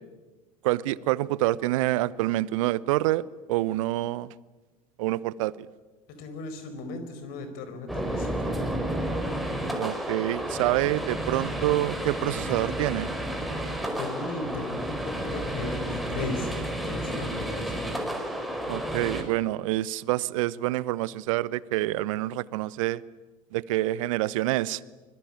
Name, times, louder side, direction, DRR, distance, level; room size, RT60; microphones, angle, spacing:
voice 1, 0.6-4.3 5.0-5.7 9.8-13.1 18.7-23.0 23.5-24.8, right 16 dB, 60° right, 21 dB, 0.9 m, -27 dB
voice 2, 6.1-8.6 14.0-16.5 16.8-18.0, left 3 dB, 55° left, 9 dB, 5.0 m, -37 dB
sound 1, 7.9-19.2, right 1 dB, ahead, 5.0 m, -31 dB
25.0 x 22.0 x 8.8 m, 1.3 s
figure-of-eight pair, 70°, 18 cm